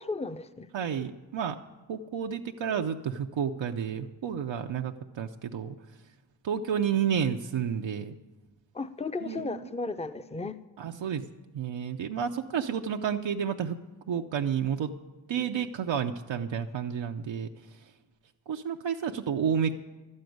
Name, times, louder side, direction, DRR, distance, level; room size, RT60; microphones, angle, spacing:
voice 1, 0.0-0.7 8.7-10.6, left 3 dB, 15° left, 12 dB, 0.6 m, -34 dB
voice 2, 0.7-1.6 1.9-5.8 6.4-8.2 9.2-9.7 10.8-11.3 11.5-13.8 14.1-14.9 15.3-17.9 18.5-19.8, right 8 dB, 80° right, 4 dB, 0.6 m, -31 dB
12.0 x 6.5 x 9.3 m, 1.2 s
cardioid pair, 40°, 44 cm